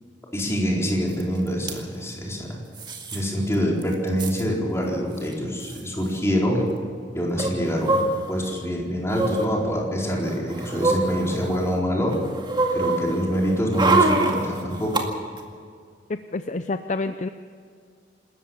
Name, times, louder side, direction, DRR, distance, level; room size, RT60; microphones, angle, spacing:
voice 1, 0.3-2.6 3.1-6.7 7.1-12.2 12.7-15.0, equal, 15° left, -2 dB, 4.3 m, -25 dB
sound 1, 1.2-1.3 1.5-1.8 2.8-3.2 3.5-3.6 3.8-4.4 5.3-5.4 5.6-5.8 7.4-8.5 9.1-9.5 10.1-11.7 12.1-15.0 15.4-15.5, right 2 dB, 25° right, 2.1 m, -25 dB
voice 2, 16.3-17.3, left 3 dB, 40° left, 10 dB, 0.6 m, -28 dB
27.0 x 14.0 x 7.3 m, 2.2 s
head